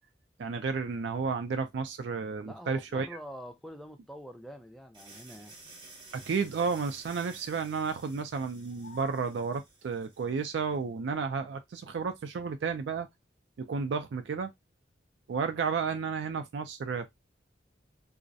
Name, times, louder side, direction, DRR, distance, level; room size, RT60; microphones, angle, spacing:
voice 1, 0.4-3.2 6.1-13.1 13.6-14.5 15.3-17.1, right 5 dB, 80° right, 0.4 m, -32 dB
voice 2, 2.4-5.5, equal, ahead, 0.3 m, -45 dB
sound 1, 4.9-10.6, right 3 dB, 30° right, 0.7 m, -53 dB
sound 2, 8.5-9.2, left 5 dB, 75° left, 0.5 m, -49 dB
2.3 x 2.0 x 2.6 m
head